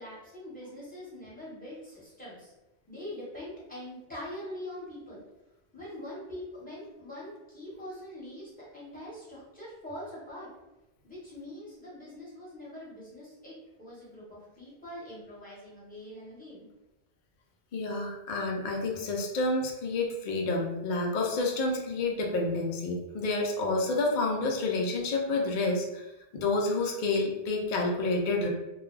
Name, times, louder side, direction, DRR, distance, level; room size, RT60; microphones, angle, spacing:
voice 1, 0.0-2.5 2.9-5.2 5.7-10.5 11.0-16.7, left 1 dB, 10° left, -9 dB, 1.1 m, -43 dB
voice 2, 17.7-26.0 26.3-28.5, left 2 dB, 55° left, 0 dB, 0.6 m, -29 dB
2.3 x 2.1 x 3.1 m, 0.97 s
omnidirectional pair, 1.1 m